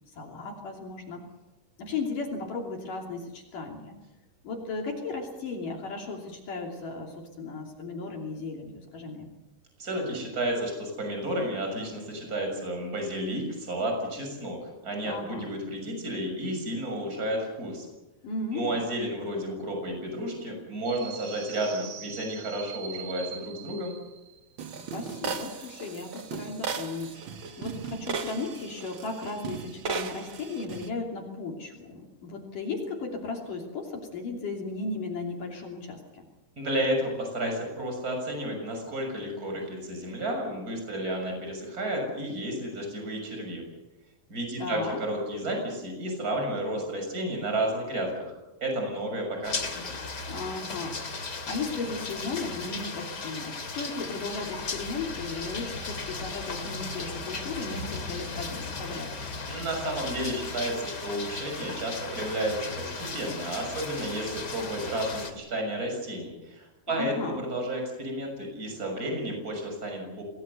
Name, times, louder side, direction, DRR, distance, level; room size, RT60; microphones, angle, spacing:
voice 1, 0.1-1.2 1.8-4.0 4.4-9.3 15.0-15.5 18.2-18.8 24.9-27.2 27.6-36.3 44.6-45.0 50.3-51.0 51.4-59.1 66.9-67.5, left 3 dB, 60° left, 1 dB, 4.4 m, -35 dB
voice 2, 9.8-14.6 14.8-17.9 18.5-24.0 36.6-43.6 44.3-48.3 48.6-50.0 59.5-70.2, right 1 dB, 20° right, 2 dB, 6.9 m, -32 dB
sound 1, 20.9-30.9, right 6 dB, 80° right, 1.1 m, -38 dB
sound 2, 49.4-65.3, left 3 dB, 30° left, 2.3 m, -36 dB
27.5 x 19.5 x 6.8 m, 1.0 s
omnidirectional pair, 4.5 m